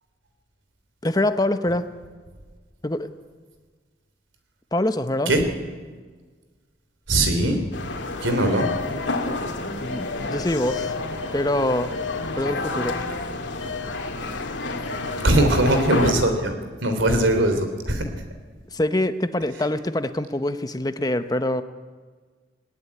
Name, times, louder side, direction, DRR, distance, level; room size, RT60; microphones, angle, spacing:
voice 1, 1.0-1.8 2.8-3.1 4.7-5.3 9.8-10.9 11.3-11.9 12.4-13.0 18.7-21.6, left 1 dB, 20° left, 10 dB, 0.9 m, -24 dB
voice 2, 7.1-7.6 8.2-8.7 15.2-16.5 16.8-18.1, right 1 dB, 90° right, 7 dB, 3.3 m, -20 dB
sound 1, 7.7-16.1, left 3 dB, 80° left, 2.3 m, -29 dB
19.0 x 18.5 x 9.7 m, 1.5 s
head